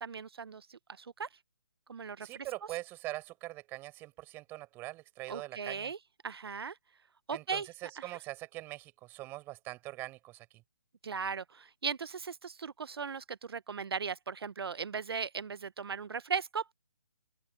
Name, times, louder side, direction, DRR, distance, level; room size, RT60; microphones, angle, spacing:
voice 1, 0.0-1.3 1.9-2.4 5.3-6.0 6.2-6.8 7.3-7.7 8.0-8.1 11.0-16.7, right 6 dB, 70° right, 0.8 m, -38 dB
voice 2, 2.2-5.9 7.3-10.5, right 18 dB, 15° right, 7.1 m, -43 dB
open air
hypercardioid pair, 160°, 13 cm